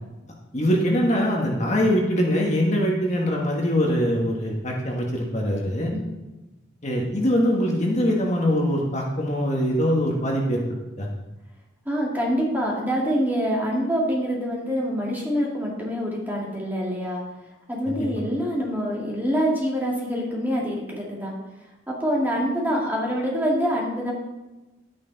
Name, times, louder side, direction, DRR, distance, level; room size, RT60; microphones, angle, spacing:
voice 1, 0.5-5.9 6.8-10.6 11.0-11.1 17.9-18.1, equal, 35° left, -1 dB, 1.6 m, -23 dB
voice 2, 11.9-17.2 17.7-21.3 21.9-24.1, equal, 10° right, -3 dB, 2.2 m, -25 dB
11.0 x 9.6 x 4.1 m, 1.1 s
head